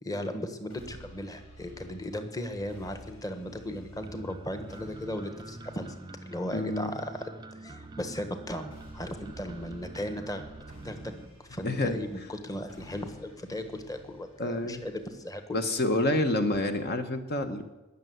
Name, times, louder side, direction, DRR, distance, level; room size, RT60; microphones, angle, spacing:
voice 1, 0.0-6.0 6.3-7.3 7.6-10.4 10.8-11.1 11.5-15.6, left 1 dB, 15° left, 8 dB, 1.2 m, -36 dB
sound 1, 0.7-16.7, equal, 85° left, 5.4 m, -53 dB
sound 2, 4.0-11.2, right 2 dB, 20° right, 0.5 m, -46 dB
voice 2, 6.5-7.0 11.6-12.3 14.4-14.8 15.5-17.7, left 1 dB, 50° left, 7 dB, 1.0 m, -28 dB
20.5 x 6.8 x 7.9 m, 1.1 s
head